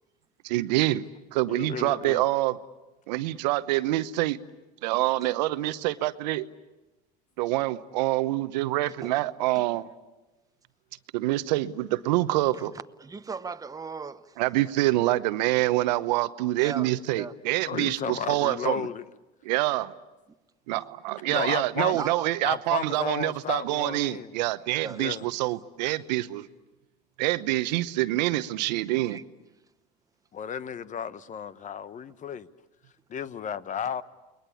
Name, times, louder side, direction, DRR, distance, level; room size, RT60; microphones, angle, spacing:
voice 1, 0.4-1.0 1.3-2.6 3.1-4.4 4.8-6.4 7.4-9.9 11.1-12.7 14.4-18.8 19.5-19.9 20.7-26.5 27.2-29.2, right 17 dB, 80° right, 1.0 m, -26 dB
voice 2, 1.5-2.2 17.6-19.0 21.2-22.1 22.4-24.3 24.9-25.2 30.3-32.5 33.1-34.0, left 7 dB, 35° left, 1.0 m, -33 dB
voice 3, 13.0-14.4 16.5-16.9 17.2-17.3 21.9-22.3 24.8-25.0 28.9-29.2, right 5 dB, 15° right, 1.0 m, -38 dB
29.5 x 21.5 x 8.4 m
supercardioid pair, 90°, 21 cm